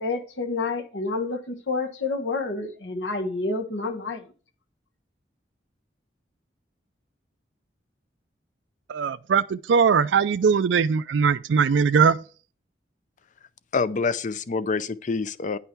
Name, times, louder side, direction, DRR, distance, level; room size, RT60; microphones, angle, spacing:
voice 1, 0.0-4.2, left 3 dB, 80° left, 1.3 m, -29 dB
voice 2, 8.9-12.2, right 6 dB, 75° right, 0.4 m, -20 dB
voice 3, 13.7-15.6, left 4 dB, 45° left, 0.5 m, -26 dB
9.9 x 5.6 x 4.5 m
head